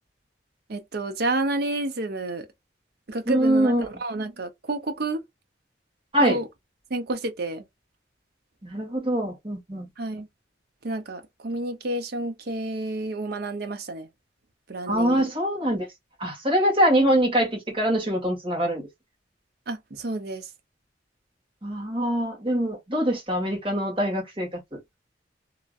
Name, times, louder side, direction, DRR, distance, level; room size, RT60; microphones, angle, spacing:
voice 1, 0.7-2.5 3.1-3.7 4.0-5.2 6.2-6.5 6.9-7.6 10.0-10.3 10.8-14.1 14.7-15.2 19.7-20.5, right 2 dB, 55° right, 0.6 m, -30 dB
voice 2, 3.3-3.9 6.1-6.4 8.6-9.9 14.9-15.9 16.2-18.8 21.6-24.8, equal, 30° right, 1.5 m, -24 dB
2.9 x 2.6 x 2.3 m
head